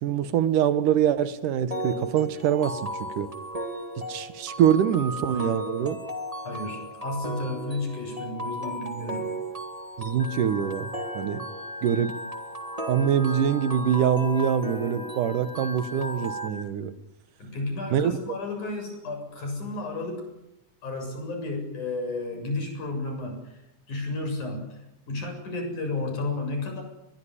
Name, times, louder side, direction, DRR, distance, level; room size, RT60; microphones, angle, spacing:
voice 1, 0.0-3.3 4.1-6.0 10.0-10.9 11.1-11.5 11.8-12.1 12.9-16.9 17.9-18.2, right 9 dB, 90° right, 13 dB, 2.9 m, -24 dB
sound 1, 1.7-16.5, right 1 dB, 15° right, 1.6 m, -36 dB
voice 2, 6.4-9.3 17.4-20.3 20.8-23.6 23.9-24.8 25.1-26.8, left 2 dB, 70° left, 4 dB, 8.8 m, -32 dB
Organ, 10.2-16.6, left 2 dB, 25° left, 1.9 m, -42 dB
22.5 x 21.5 x 9.9 m, 0.85 s
omnidirectional pair, 3.6 m